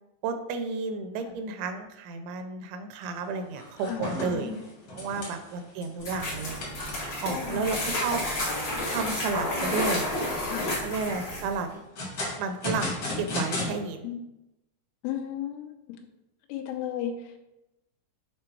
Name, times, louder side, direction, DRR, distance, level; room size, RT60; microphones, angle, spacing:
voice 1, 0.2-4.5 4.9-6.6 7.2-8.2 8.9-10.1 10.8-11.7 12.4-14.1, right 4 dB, 80° right, 7 dB, 2.8 m, -32 dB
sound 1, 3.0-3.2 3.5-7.2 7.7-7.8 8.3-8.4 8.8-9.3 9.8-10.4 11.5-13.7, left 2 dB, 50° left, 1.5 m, -35 dB
sound 2, 6.0-11.6, left 1 dB, 70° left, 1.1 m, -31 dB
voice 2, 7.3-7.7 10.5-10.7 14.0-14.2 15.0-16.0 16.5-17.4, left 9 dB, 85° left, 5 dB, 3.2 m, -34 dB
7.6 x 3.8 x 4.6 m, 0.92 s
omnidirectional pair, 5.4 m